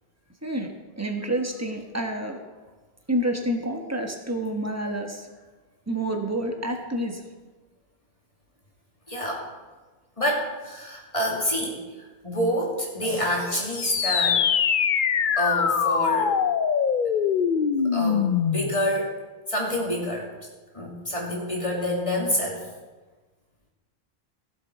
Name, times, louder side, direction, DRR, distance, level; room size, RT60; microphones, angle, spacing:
voice 1, 0.4-2.4 3.1-5.2 5.9-7.2, right 1 dB, 15° right, 3 dB, 1.2 m, -28 dB
voice 2, 9.1-9.5 10.2-14.5 15.4-16.3 17.9-19.1 19.5-20.3 20.7-22.6, equal, 35° left, -3 dB, 2.5 m, -27 dB
sound 1, 13.7-18.8, left 7 dB, 60° left, 0.7 m, -23 dB
16.5 x 7.6 x 4.4 m, 1.3 s
omnidirectional pair, 1.0 m